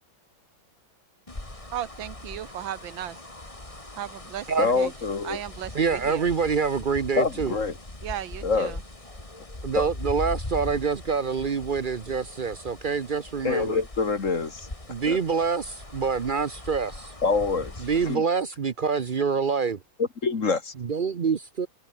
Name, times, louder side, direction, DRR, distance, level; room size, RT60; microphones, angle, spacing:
sound 1, 1.3-18.1, left 2 dB, 15° left, 2.9 m, -40 dB
voice 1, 1.7-3.1 4.0-4.5 4.8-4.9 5.2-5.7 6.1-6.2 8.0-8.7, right 11 dB, 70° right, 1.5 m, -35 dB
voice 2, 4.6-5.4 7.2-7.7 8.4-8.8 9.8-9.9 13.4-14.7 15.1-15.2 17.2-18.2 20.2-20.7, left 4 dB, 40° left, 2.1 m, -26 dB
voice 3, 5.7-7.6 9.6-13.8 14.9-17.1 17.8-19.8 20.8-21.7, right 5 dB, 90° right, 0.4 m, -26 dB
omnidirectional pair, 2.3 m